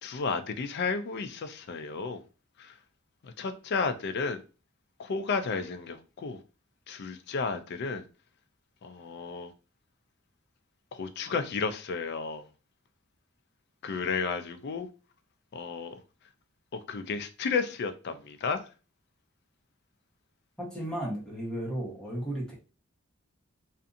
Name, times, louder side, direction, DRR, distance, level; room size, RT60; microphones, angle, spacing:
voice 1, 0.0-2.2 2.6-2.8 3.2-4.4 5.0-6.4 6.9-8.0 8.8-9.5 10.9-12.5 13.8-14.9 15.5-16.0 16.7-18.7, left 5 dB, 50° left, 0.4 m, -32 dB
voice 2, 20.6-22.5, right 1 dB, 5° left, 1.0 m, -34 dB
2.6 x 2.5 x 2.5 m
head